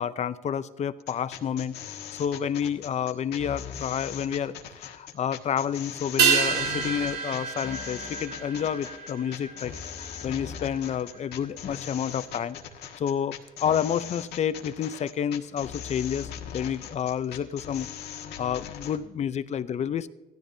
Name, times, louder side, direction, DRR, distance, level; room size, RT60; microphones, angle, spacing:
voice 1, 0.0-1.7 2.1-12.6 13.0-17.9 18.4-20.1, left 8 dB, 40° left, 14 dB, 0.6 m, -29 dB
sound 1, 1.0-19.0, left 9 dB, 75° left, 1.5 m, -40 dB
sound 2, 6.2-10.9 11.2-11.3, right 6 dB, 70° right, 2.3 m, -28 dB
16.5 x 13.0 x 2.7 m, 1.2 s
cardioid pair, 110°, 17 cm